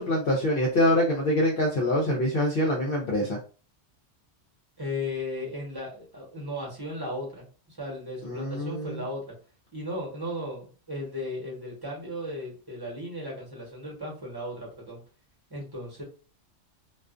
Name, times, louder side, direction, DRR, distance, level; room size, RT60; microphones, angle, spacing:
voice 1, 0.0-3.4 8.3-9.0, left 1 dB, 60° left, -2 dB, 0.7 m, -25 dB
voice 2, 4.8-9.3 9.7-15.0 15.5-16.0, left 1 dB, 20° right, -3 dB, 1.0 m, -36 dB
2.3 x 2.3 x 2.4 m, 0.36 s
omnidirectional pair, 1.3 m